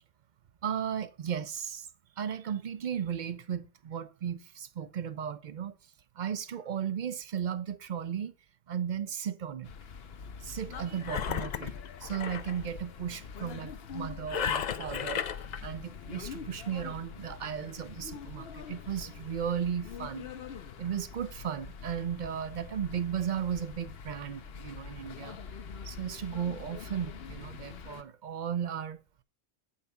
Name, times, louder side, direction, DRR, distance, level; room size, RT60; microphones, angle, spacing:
voice 1, 0.6-1.9 2.2-5.7 6.1-8.3 8.7-9.7 10.4-15.2 15.6-20.3 20.8-25.4 25.8-29.0, right 8 dB, 55° right, 0.7 m, -35 dB
sound 1, 9.6-28.0, left 6 dB, 70° left, 1.0 m, -45 dB
Engine, 11.0-12.6 14.3-15.6, left 8 dB, 55° left, 0.5 m, -33 dB
8.0 x 5.8 x 5.6 m
omnidirectional pair, 1.1 m